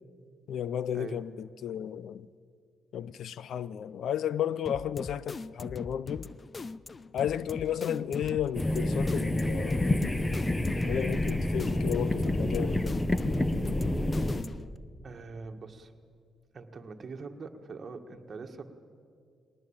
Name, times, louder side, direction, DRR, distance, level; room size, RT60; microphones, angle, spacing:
voice 1, 0.5-2.3 2.9-6.3 7.1-10.1 10.8-13.0, left 9 dB, 75° left, 0.6 m, -33 dB
sound 1, 4.7-14.8, left 4 dB, 35° left, 0.6 m, -41 dB
sound 2, 8.5-14.4, left 1 dB, 15° left, 1.1 m, -28 dB
voice 2, 15.0-15.9 16.5-18.7, right 4 dB, 45° right, 1.7 m, -43 dB
21.5 x 18.5 x 8.9 m
cardioid pair, 85°, 0 cm